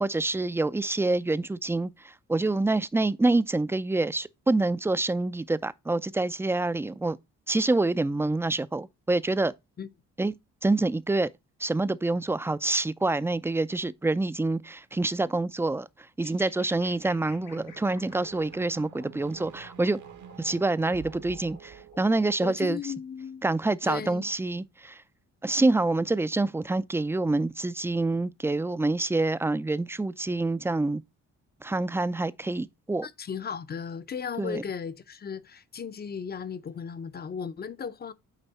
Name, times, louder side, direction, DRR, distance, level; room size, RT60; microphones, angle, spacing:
voice 1, 0.0-7.2 7.5-9.5 10.2-10.3 10.6-11.3 11.6-15.9 16.2-20.0 20.4-22.8 23.4-25.0 25.4-31.0 31.6-33.1 34.4-34.6, right 2 dB, 10° right, 0.4 m, -26 dB
sound 1, 16.2-22.5, left 4 dB, 80° left, 5.0 m, -53 dB
sound 2, 17.0-22.6, right 8 dB, 70° right, 1.2 m, -48 dB
voice 2, 22.4-23.4 23.8-24.3 33.0-38.1, left 6 dB, 30° left, 0.6 m, -36 dB
9.0 x 3.4 x 4.1 m
cardioid pair, 90°, 30 cm